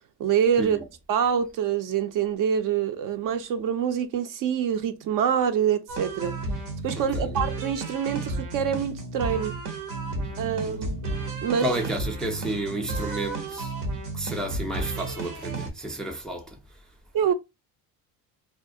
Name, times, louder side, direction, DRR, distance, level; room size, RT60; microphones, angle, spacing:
voice 1, 0.2-0.8 1.1-6.3 6.8-9.6 10.4-11.0 11.4-11.7 17.1-17.3, right 8 dB, 55° right, 0.5 m, -25 dB
sound 1, 5.9-15.7, right 2 dB, 85° right, 0.9 m, -32 dB
voice 2, 10.0-10.8 11.6-13.7 14.1-16.8, right 1 dB, ahead, 0.4 m, -32 dB
2.4 x 2.1 x 2.6 m
cardioid pair, 100°, 38 cm